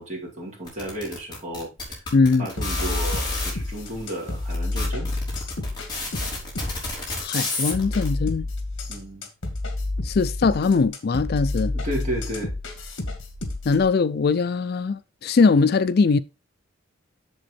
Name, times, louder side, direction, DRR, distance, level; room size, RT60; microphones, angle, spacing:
voice 1, 0.0-2.0 2.4-5.1 8.9-9.2 11.7-12.5, right 1 dB, 35° right, 4.3 m, -33 dB
clicks and claps, 0.7-3.5 4.2-4.3 4.5-8.1, left 2 dB, 20° left, 3.9 m, -30 dB
voice 2, 2.1-2.5 7.2-8.5 10.0-11.7 13.7-16.2, left 4 dB, 50° left, 0.4 m, -21 dB
sound 1, 2.6-13.9, left 2 dB, 65° left, 2.0 m, -30 dB
7.8 x 6.9 x 4.3 m
head